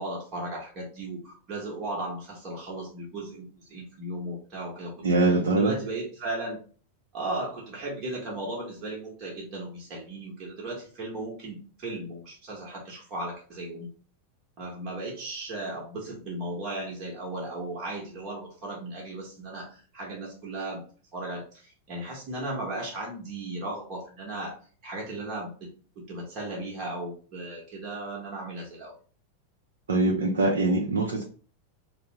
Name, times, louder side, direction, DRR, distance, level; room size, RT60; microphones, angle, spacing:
voice 1, 0.0-4.9 5.2-5.3 5.6-6.6 7.1-13.9 14.6-20.8 21.1-24.6 24.8-25.5 26.1-28.9, right 2 dB, 35° right, -3 dB, 1.0 m, -36 dB
voice 2, 5.0-5.7 29.9-31.2, right 2 dB, 65° right, 0 dB, 0.5 m, -23 dB
3.3 x 2.0 x 2.9 m, 0.41 s
figure-of-eight pair, 90°, 0 cm